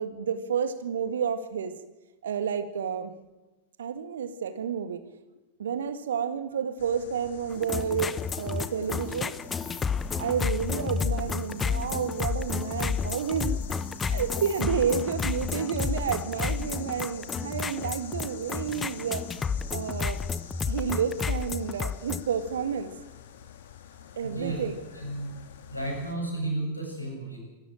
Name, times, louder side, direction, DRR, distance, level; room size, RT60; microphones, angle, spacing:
voice 1, 0.0-1.7 2.2-3.1 3.8-5.1 5.6-9.3 10.2-13.6 14.1-19.3 19.7-20.2 20.7-22.9 24.2-24.8, right 7 dB, 65° right, 11 dB, 1.9 m, -30 dB
sound 1, 6.8-26.2, left 9 dB, 60° left, 2.8 m, -46 dB
sound 2, 7.5-22.2, left 5 dB, 20° left, 0.9 m, -31 dB
voice 2, 23.9-24.6 24.9-25.4 25.7-27.4, right 2 dB, 85° left, 1 dB, 7.5 m, -33 dB
25.5 x 13.0 x 8.9 m, 1.0 s
figure-of-eight pair, 90°, 0 cm